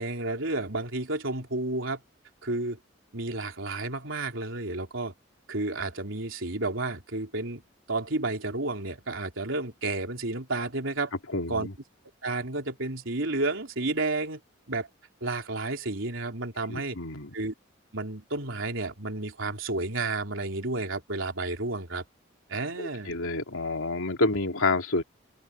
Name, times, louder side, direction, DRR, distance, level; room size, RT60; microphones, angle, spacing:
voice 1, 0.0-2.0 2.4-2.8 3.1-5.1 5.5-7.6 7.9-11.1 11.5-11.7 12.2-14.4 14.7-14.9 15.2-17.0 17.3-17.5 17.9-22.0 22.5-23.1, right 2 dB, 75° right, 3.4 m, -31 dB
voice 2, 11.3-11.7 16.7-17.3 22.8-25.0, left 2 dB, 90° left, 2.9 m, -28 dB
head